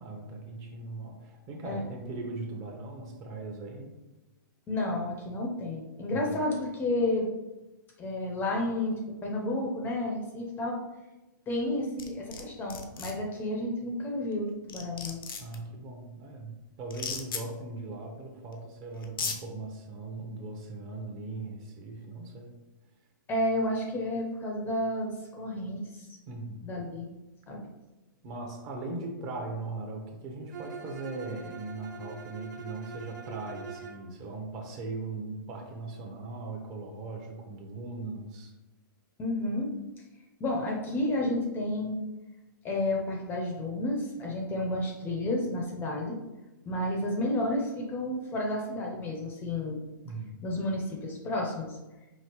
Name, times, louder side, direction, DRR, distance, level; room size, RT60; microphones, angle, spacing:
voice 1, 0.0-3.9 6.1-6.3 15.4-22.6 26.3-26.7 28.2-38.5 50.0-50.3, right 3 dB, 30° right, 2 dB, 0.8 m, -39 dB
voice 2, 4.7-7.3 8.0-10.8 11.5-15.2 23.3-26.1 26.6-27.1 27.5-27.6 39.2-39.7 40.4-42.0 42.6-46.2 46.7-49.8 50.4-51.8, left 1 dB, 20° left, 0 dB, 0.6 m, -31 dB
sound 1, 12.0-12.4 12.7-13.1 14.3-14.4 14.7-15.6 16.9-17.4 18.5-18.6 19.0-19.4, left 5 dB, 85° left, 0.7 m, -35 dB
Bowed string instrument, 30.5-34.1, right 5 dB, 60° right, 0.6 m, -44 dB
5.1 x 2.7 x 3.0 m, 1.0 s
hypercardioid pair, 135°, 11 cm